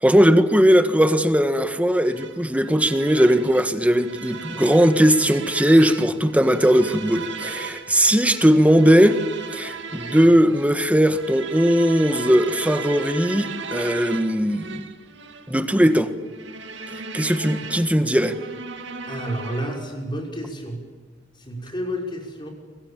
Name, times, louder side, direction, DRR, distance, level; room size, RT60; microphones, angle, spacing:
voice 1, 0.0-9.2 9.5-14.9 15.5-16.1 17.1-18.4, equal, 10° right, 1.6 m, -18 dB
sound 1, 2.0-20.0, right 4 dB, 65° right, 2.3 m, -36 dB
voice 2, 19.1-20.9 21.3-22.5, equal, 25° left, 6.2 m, -30 dB
29.5 x 25.0 x 7.4 m
head